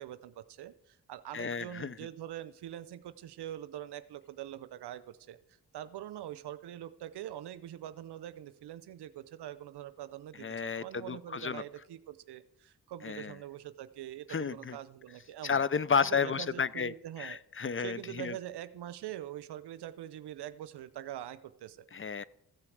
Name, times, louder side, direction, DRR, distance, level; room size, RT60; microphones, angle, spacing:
voice 1, 0.0-15.6 16.0-17.4 17.8-21.9, right 12 dB, 80° right, 14 dB, 0.7 m, -44 dB
voice 2, 1.3-1.9 10.4-11.6 13.0-13.3 14.3-14.8 15.4-16.9 17.2-18.3 21.9-22.2, left 6 dB, 30° left, 19 dB, 0.7 m, -32 dB
14.5 x 5.8 x 7.9 m, 0.76 s
supercardioid pair, 45°, 40 cm